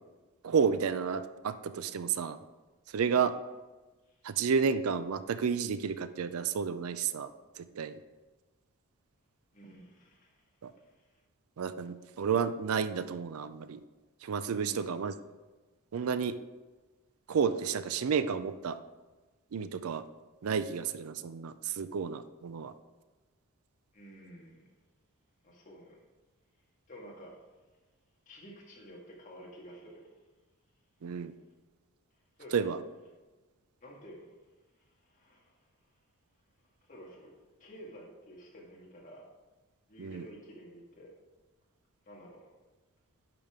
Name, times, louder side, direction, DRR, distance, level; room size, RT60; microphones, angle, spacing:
voice 1, 0.4-2.4 2.9-3.3 4.2-7.3 7.6-8.0 10.6-10.7 11.6-13.8 14.2-15.1 15.9-16.4 17.3-18.8 19.5-20.0 20.4-22.7 31.0-31.3 32.5-32.8 40.0-40.2, right 6 dB, 75° right, 12 dB, 0.4 m, -31 dB
voice 2, 9.5-10.5 10.8-11.2 14.5-15.0 23.9-24.6 25.4-26.0 26.9-27.4 28.3-30.1 32.4-32.7 33.8-34.3 34.8-35.6 36.8-39.3 39.9-41.1 42.1-42.4, equal, 35° left, -2 dB, 1.7 m, -51 dB
10.5 x 5.1 x 3.6 m, 1.2 s
head